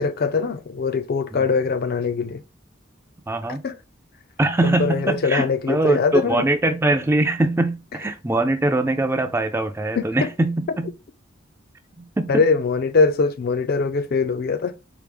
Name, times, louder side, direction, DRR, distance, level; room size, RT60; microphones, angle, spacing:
voice 1, 0.0-2.4 3.6-3.8 4.6-6.5 10.0-10.3 12.3-14.7, left 4 dB, 55° left, 0.4 m, -22 dB
voice 2, 3.3-3.6 4.4-10.9 12.0-12.4, right 2 dB, 15° right, 0.4 m, -22 dB
4.5 x 2.0 x 3.4 m
head